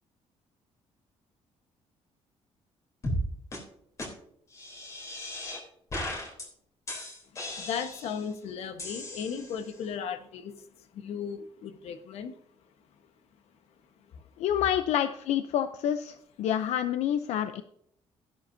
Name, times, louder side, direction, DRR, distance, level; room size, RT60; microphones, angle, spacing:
sound 1, 3.0-3.2 3.5-3.6 4.0-4.1 4.5-5.6 5.9-6.5 6.9-8.3 8.8-9.7, left 1 dB, 30° left, 3.4 m, -36 dB
voice 1, 7.6-12.4 14.1-14.2, left 7 dB, 70° left, 8 dB, 1.2 m, -36 dB
voice 2, 14.4-17.6, left 10 dB, 90° left, 10 dB, 0.6 m, -28 dB
13.5 x 11.0 x 2.7 m, 0.70 s
cardioid pair, 180°, 11 cm